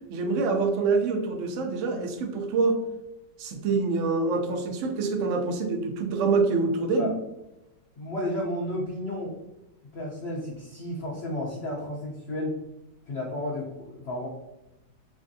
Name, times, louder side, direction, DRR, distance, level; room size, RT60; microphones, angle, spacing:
voice 1, 0.1-2.8 3.4-7.1, right 4 dB, 65° right, 3 dB, 0.8 m, -26 dB
voice 2, 8.0-9.3 9.9-12.6 13.1-14.3, left 1 dB, 55° left, -5 dB, 0.7 m, -32 dB
3.4 x 3.3 x 2.6 m, 0.93 s
omnidirectional pair, 1.9 m